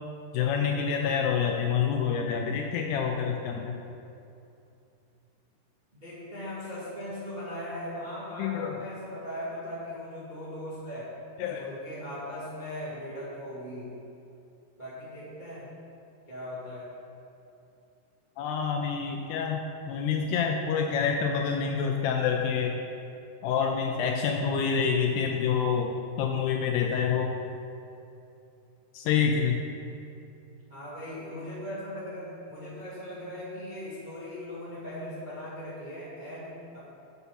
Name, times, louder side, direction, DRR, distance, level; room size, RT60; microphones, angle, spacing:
voice 1, 0.3-3.8 8.4-8.8 11.4-11.6 18.4-22.8 23.4-25.9 26.2-27.3 28.9-29.6, left 6 dB, 80° left, 2 dB, 2.4 m, -27 dB
voice 2, 5.9-11.1 11.5-14.0 14.8-15.7 16.3-16.9 30.7-36.8, left 1 dB, 25° right, -10 dB, 0.9 m, -39 dB
11.0 x 6.9 x 4.2 m, 2.7 s
omnidirectional pair, 5.0 m